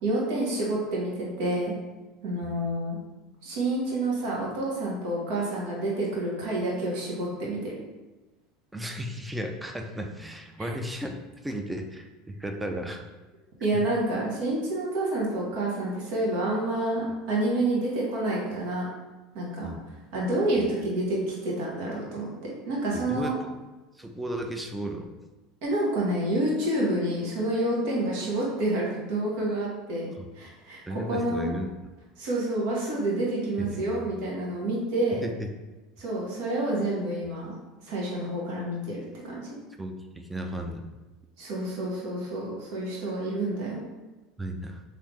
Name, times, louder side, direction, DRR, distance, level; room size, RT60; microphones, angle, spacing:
voice 1, 0.0-1.7 2.2-3.0 3.4-7.7 13.6-18.9 19.3-19.7 20.1-23.3 25.6-30.8 31.1-31.5 32.2-35.2 36.0-37.5 37.8-39.4 41.4-43.8, right 1 dB, 70° right, -3 dB, 1.1 m, -28 dB
voice 2, 8.7-11.2 11.4-13.0 19.6-19.8 20.6-20.7 22.9-23.6 24.0-25.1 30.2-30.3 30.9-31.7 33.6-34.0 35.2-35.5 39.8-40.8 44.4-44.8, equal, 10° right, 4 dB, 0.5 m, -34 dB
3.3 x 2.7 x 3.1 m, 1.1 s
hypercardioid pair, 95°, 0 cm